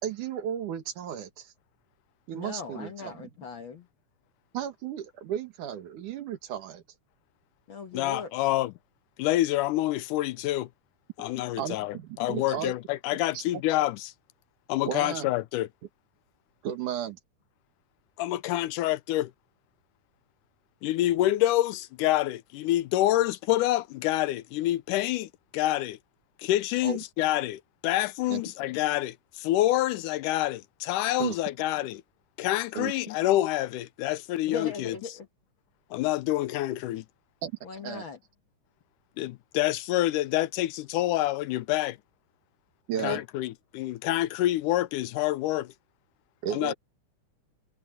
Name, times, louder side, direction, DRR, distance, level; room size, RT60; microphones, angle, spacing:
voice 1, 0.0-1.5 2.3-3.1 4.5-6.8 11.6-12.7 13.3-13.4 14.8-15.3 16.6-17.2 26.8-27.0 28.3-28.4 31.2-31.4 32.7-32.9 37.4-37.5 37.8-38.0 42.9-43.2 46.4-46.7, right 9 dB, 75° right, 3.1 m, -34 dB
voice 2, 2.3-3.9 7.7-8.3 34.5-35.3 37.6-38.2 43.0-43.2, left 5 dB, 50° left, 1.6 m, -39 dB
voice 3, 7.9-8.7 9.2-10.7 11.2-14.1 14.7-15.7 18.2-19.3 20.8-26.0 26.4-32.0 32.4-35.0 35.9-37.1 39.2-42.0 43.0-45.7 46.5-46.7, left 15 dB, 90° left, 2.2 m, -27 dB
omnidirectional pair, 3.7 m